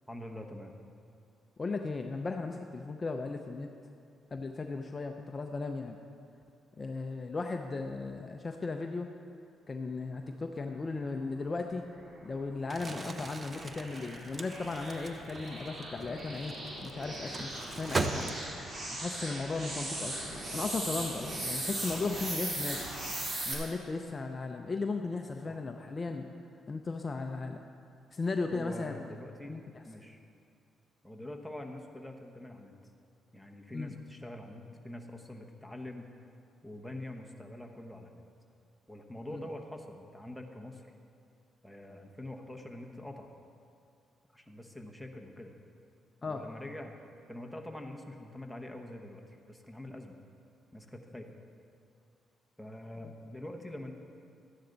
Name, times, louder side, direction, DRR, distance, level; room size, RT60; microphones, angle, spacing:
voice 1, 0.1-0.7 25.5-25.7 28.5-29.6 29.9-30.2 31.0-32.7 33.3-36.1 36.6-38.2 38.9-40.9 41.6-43.3 44.3-45.5 46.2-46.9 47.3-50.2 50.7-51.3 52.6-53.9, left 1 dB, ahead, 2 dB, 1.1 m, -45 dB
voice 2, 1.6-3.7 4.3-6.0 6.8-9.1 9.7-11.8 12.2-16.5 16.8-18.4 18.9-22.9 23.5-26.3 26.7-27.7 28.1-29.1 29.5-29.6 33.7-33.9 39.3-39.4 46.2-46.5, left 3 dB, 30° left, 4 dB, 0.6 m, -36 dB
sound 1, 12.0-23.5, right 1 dB, 45° right, 2.9 m, -39 dB
Crumpling crinkling, 12.6-18.8, right 3 dB, 30° right, 0.6 m, -39 dB
13.0 x 10.0 x 4.0 m, 2.5 s
cardioid pair, 90°, 0 cm